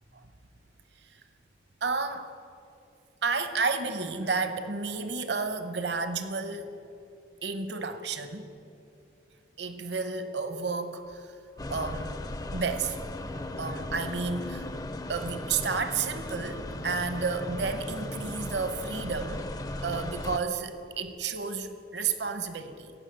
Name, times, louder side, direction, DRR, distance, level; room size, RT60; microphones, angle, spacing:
voice 1, 1.8-2.3 3.2-6.7 7.4-8.5 9.6-11.3 11.7-12.1 12.5-13.0 13.6-14.7 15.1-22.9, right 4 dB, 60° right, 9 dB, 0.9 m, -31 dB
sound 1, 11.6-20.4, left 2 dB, 20° left, 0.4 m, -37 dB
16.0 x 5.9 x 8.9 m, 2.6 s
head